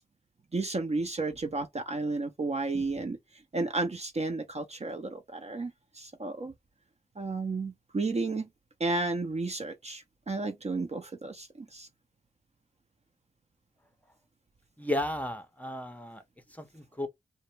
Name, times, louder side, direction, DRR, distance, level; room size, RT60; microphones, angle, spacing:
voice 1, 0.5-3.2 3.5-6.5 7.2-8.5 8.8-11.9, right 3 dB, 35° right, 0.5 m, -32 dB
voice 2, 14.8-16.2 16.6-17.1, left 1 dB, 5° left, 0.6 m, -33 dB
2.1 x 2.1 x 3.1 m
cardioid pair, 40°, 20 cm